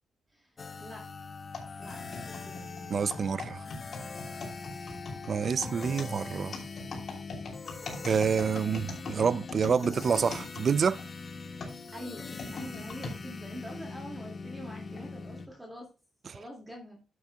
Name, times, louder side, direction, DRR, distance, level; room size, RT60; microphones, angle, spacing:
voice 1, 0.3-1.1 1.8-2.6 11.9-15.9 16.3-17.0, equal, 15° right, 2.1 m, -45 dB
sound 1, 0.6-15.5, left 4 dB, 40° left, 0.8 m, -42 dB
sound 2, 1.5-11.1 11.6-13.2 13.8-13.9 14.8-15.0, left 3 dB, 55° left, 2.9 m, -41 dB
voice 2, 2.9-3.6 5.3-6.5 8.0-11.0 16.3-16.4, right 6 dB, 50° right, 0.4 m, -27 dB
12.0 x 7.8 x 2.2 m
cardioid pair, 105°, 0 cm